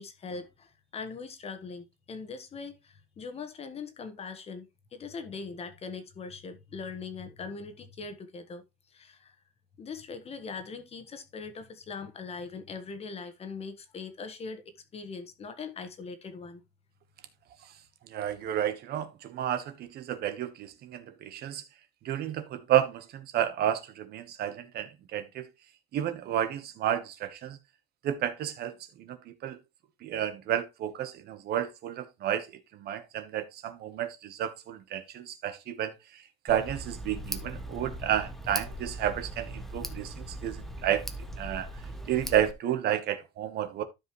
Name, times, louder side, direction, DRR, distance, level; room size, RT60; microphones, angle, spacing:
voice 1, 0.0-8.6 8.9-9.3 9.8-14.6 14.9-16.6, left 4 dB, 30° left, 1.5 m, -41 dB
voice 2, 18.1-21.6 22.0-25.5 25.9-27.6 28.0-28.7 29.4-29.6 30.0-32.5 32.8-35.9 36.4-40.1 40.4-40.6 40.8-41.0 41.4-41.7 42.1-43.8, right 11 dB, 55° right, 1.2 m, -31 dB
Tick, 36.5-42.5, right 1 dB, ahead, 1.0 m, -39 dB
12.5 x 5.3 x 3.1 m
cardioid pair, 140°, 20 cm